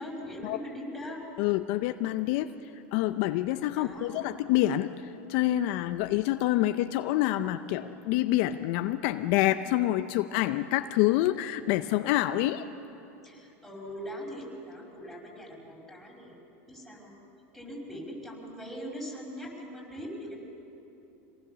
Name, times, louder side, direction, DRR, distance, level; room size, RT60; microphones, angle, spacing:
voice 1, 0.0-1.2 3.7-4.2 13.2-16.3 16.7-17.1 17.5-20.4, equal, ahead, -2 dB, 5.5 m, -41 dB
voice 2, 1.4-12.7, left 15 dB, 60° left, 10 dB, 0.6 m, -27 dB
26.5 x 19.0 x 6.9 m, 3.0 s
supercardioid pair, 125°, 8 cm